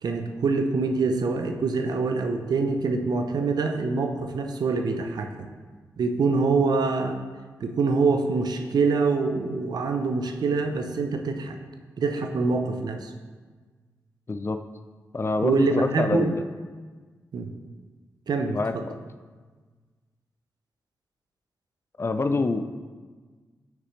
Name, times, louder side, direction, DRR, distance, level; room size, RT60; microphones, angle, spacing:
voice 1, 0.0-5.5 6.0-7.2 7.6-11.6 12.0-13.1 15.4-16.3 17.3-17.5 18.3-18.8, right 4 dB, 70° right, 6 dB, 0.6 m, -25 dB
voice 2, 14.3-14.6 15.1-16.4 18.5-19.0 22.0-22.6, left 3 dB, 35° left, 9 dB, 0.4 m, -26 dB
6.3 x 5.1 x 3.2 m, 1.4 s
supercardioid pair, 45°, 7 cm